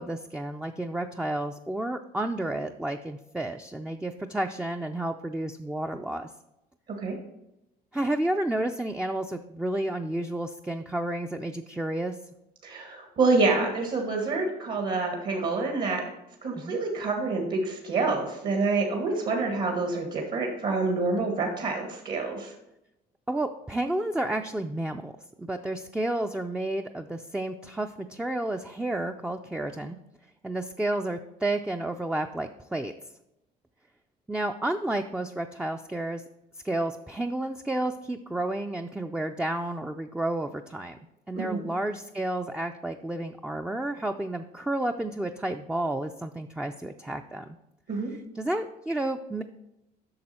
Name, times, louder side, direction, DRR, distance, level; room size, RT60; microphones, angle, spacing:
voice 1, 0.0-6.3 7.9-12.2 16.6-16.8 23.3-25.1 25.4-30.0 30.4-32.9 34.3-36.2 36.6-41.0 41.3-47.6 48.1-49.4, right 1 dB, 5° right, 5 dB, 0.3 m, -31 dB
voice 2, 12.6-16.0 16.4-22.5 41.3-41.6 47.9-48.1, right 3 dB, 60° right, 1 dB, 1.7 m, -27 dB
8.7 x 6.1 x 4.3 m, 0.89 s
cardioid pair, 110°, 17 cm